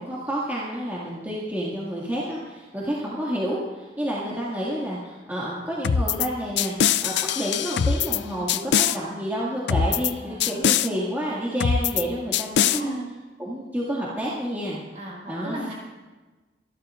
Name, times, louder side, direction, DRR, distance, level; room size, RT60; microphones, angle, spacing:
voice 1, 0.0-12.9 13.4-14.8 15.3-15.7, equal, 10° right, -7 dB, 2.1 m, -29 dB
sound 1, 5.8-6.3 6.6-8.2 8.5-9.0 9.7-10.1 10.4-10.9 11.6-12.0 12.3-12.8, left 8 dB, 80° left, 0.4 m, -22 dB
voice 2, 10.2-11.1 12.6-13.1 14.9-15.7, right 1 dB, 40° right, -3 dB, 4.6 m, -35 dB
26.5 x 12.0 x 2.5 m, 1.2 s
head